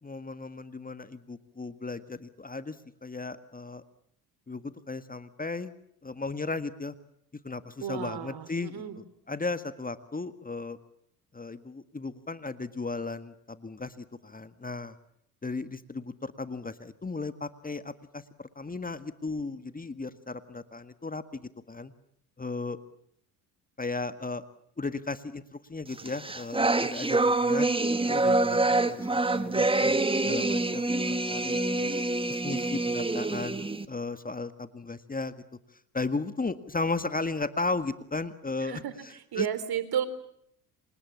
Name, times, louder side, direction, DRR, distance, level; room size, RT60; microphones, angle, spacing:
voice 1, 0.0-2.8 3.0-3.8 4.5-5.7 6.0-7.0 7.4-10.8 11.3-15.0 15.4-21.9 22.4-22.8 23.8-24.4 24.8-27.7 28.1-31.9 32.3-35.3 35.9-39.5, left 3 dB, 20° left, 11 dB, 1.8 m, -35 dB
voice 2, 7.8-9.0 38.6-40.1, right 9 dB, 50° right, 14 dB, 3.8 m, -33 dB
sound 1, 26.0-33.9, right 2 dB, 10° right, 1.9 m, -26 dB
29.5 x 26.0 x 7.3 m, 0.73 s
hypercardioid pair, 60°, 46 cm